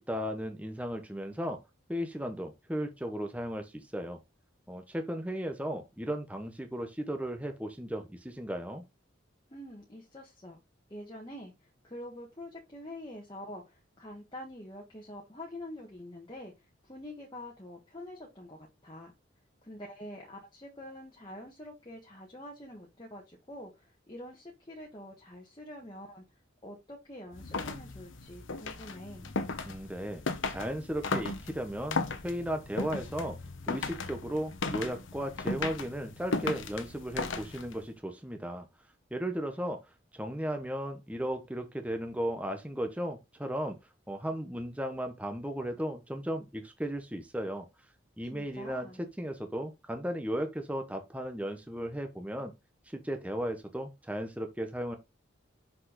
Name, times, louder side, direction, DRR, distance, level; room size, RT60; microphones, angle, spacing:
voice 1, 0.0-1.6 1.9-4.2 4.7-8.8 29.6-30.2 30.5-33.4 33.7-38.7 39.1-39.8 40.1-43.8 44.1-47.7 48.2-52.5 52.9-55.0, equal, 5° right, 0.9 m, -35 dB
voice 2, 9.5-10.6 10.9-16.5 16.8-19.1 19.6-26.2 26.6-29.3 48.3-49.1, left 1 dB, 25° left, 1.4 m, -46 dB
sound 1, 27.3-37.9, left 3 dB, 70° left, 1.0 m, -36 dB
6.1 x 5.3 x 3.8 m
head